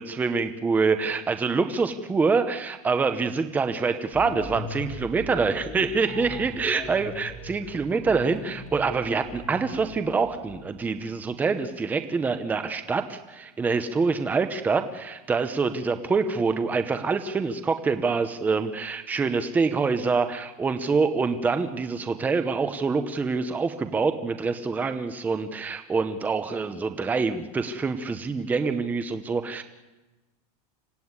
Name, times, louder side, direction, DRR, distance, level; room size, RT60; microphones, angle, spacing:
voice 1, 0.0-29.6, right 4 dB, 10° right, 8 dB, 0.8 m, -26 dB
sound 1, 4.1-10.8, left 2 dB, 25° left, 4.3 m, -39 dB
25.5 x 16.0 x 9.6 m, 1.1 s
supercardioid pair, 175°, 20 cm